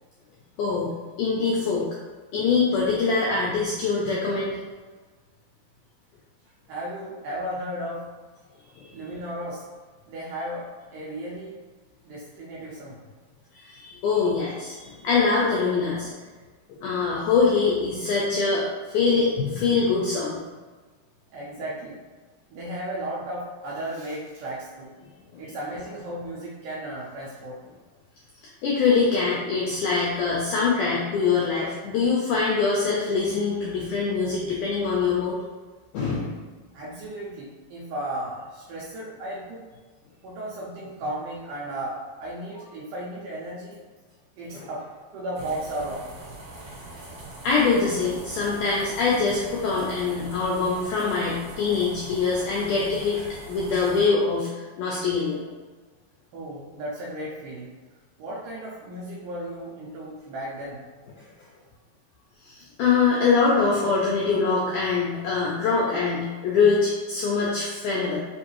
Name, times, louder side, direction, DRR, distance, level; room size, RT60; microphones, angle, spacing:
voice 1, 0.6-1.9 2.3-4.6 8.8-8.9 13.5-16.1 16.8-20.4 25.3-25.5 28.6-35.4 35.9-36.4 44.5-44.7 47.4-55.4 61.2-61.3 62.4-68.2, left 4 dB, 85° left, -4 dB, 1.8 m, -24 dB
voice 2, 6.7-8.1 8.9-9.6 10.1-11.6 12.0-13.0 21.3-22.0 22.5-24.9 25.4-27.6 36.7-39.6 40.2-43.8 44.4-44.9 45.1-46.1 56.3-57.7 58.2-60.8, right 1 dB, 75° right, -5 dB, 2.0 m, -34 dB
sound 1, 45.3-54.1, right 2 dB, 55° right, 2.4 m, -42 dB
5.6 x 2.6 x 2.9 m, 1.4 s
omnidirectional pair, 4.3 m